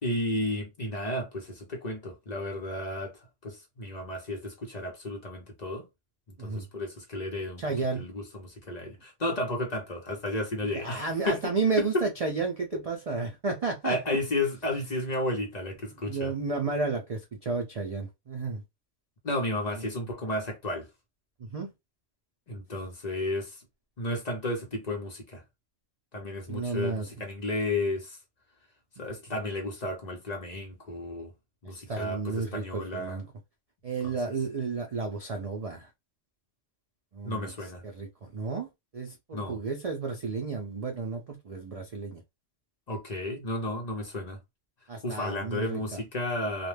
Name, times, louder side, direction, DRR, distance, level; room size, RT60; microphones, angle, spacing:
voice 1, 0.0-3.1 3.4-5.9 6.4-7.6 7.9-11.5 11.8-12.0 12.7-12.8 13.8-16.3 19.2-20.9 22.5-23.6 24.0-25.4 26.1-28.2 29.0-31.3 31.6-33.2 34.0-34.1 37.2-37.8 39.3-39.6 42.9-44.4 45.0-46.7, left 1 dB, 40° left, 0.7 m, -33 dB
voice 2, 7.6-8.0 10.7-14.2 16.1-18.6 21.4-21.7 26.5-27.1 31.6-33.3 33.8-35.9 37.1-37.5 37.8-42.2 44.9-46.0, right 4 dB, 75° right, 0.3 m, -32 dB
2.4 x 2.1 x 3.2 m
omnidirectional pair, 1.3 m